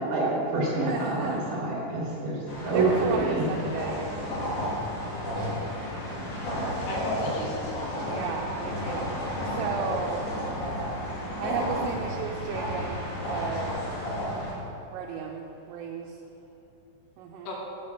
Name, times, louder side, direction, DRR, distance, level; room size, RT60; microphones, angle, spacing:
voice 1, 0.1-2.4 2.6-3.4, right 2 dB, 70° right, -6 dB, 3.0 m, -27 dB
voice 2, 0.7-1.4 2.7-4.1 8.1-9.1 9.4-10.3 11.4-13.8 14.9-16.2 17.2-17.5, right 6 dB, 90° right, 0 dB, 2.7 m, -34 dB
sound 1, 2.5-14.5, equal, 55° left, 3.1 m, -32 dB
voice 3, 6.7-8.4 17.5-17.6, left 1 dB, 80° left, -2 dB, 3.4 m, -36 dB
7.7 x 5.5 x 6.5 m, 3.0 s
omnidirectional pair, 4.8 m